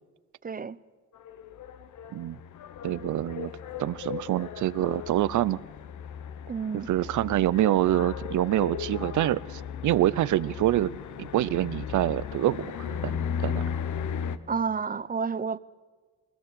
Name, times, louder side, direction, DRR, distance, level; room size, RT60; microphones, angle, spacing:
voice 1, 0.4-0.8 6.5-6.9 14.5-15.6, right 5 dB, 25° right, 0.7 m, -30 dB
sound 1, 1.2-14.4, left 8 dB, 60° left, 1.0 m, -36 dB
voice 2, 2.8-3.5 3.8-5.6 6.7-10.9 11.2-13.6, right 14 dB, 60° right, 0.6 m, -26 dB
20.5 x 20.5 x 6.9 m
hypercardioid pair, 50°, 33 cm